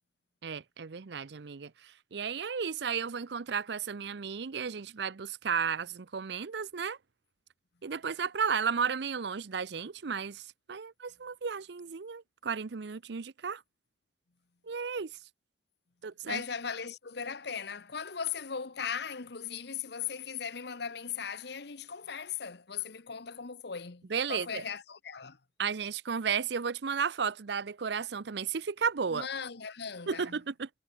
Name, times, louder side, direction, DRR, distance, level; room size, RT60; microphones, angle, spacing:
voice 1, 0.4-7.0 7.8-13.6 14.6-15.1 16.0-16.4 24.1-24.6 25.6-29.3 30.1-30.7, right 6 dB, 65° right, 0.6 m, -34 dB
voice 2, 16.2-25.4 29.1-30.4, left 7 dB, 60° left, 1.0 m, -38 dB
head